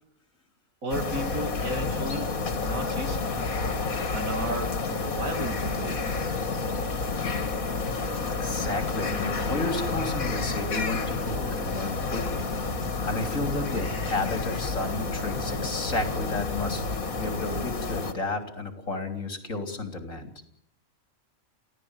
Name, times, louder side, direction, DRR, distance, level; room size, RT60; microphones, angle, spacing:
voice 1, 0.8-3.2 4.1-6.0, right 2 dB, 75° right, 7 dB, 3.0 m, -34 dB
sound 1, 0.9-18.1, left 4 dB, 85° left, 2.5 m, -30 dB
voice 2, 8.4-20.3, left 2 dB, 70° left, 7 dB, 3.8 m, -32 dB
29.5 x 16.5 x 8.2 m, 0.71 s
omnidirectional pair, 1.4 m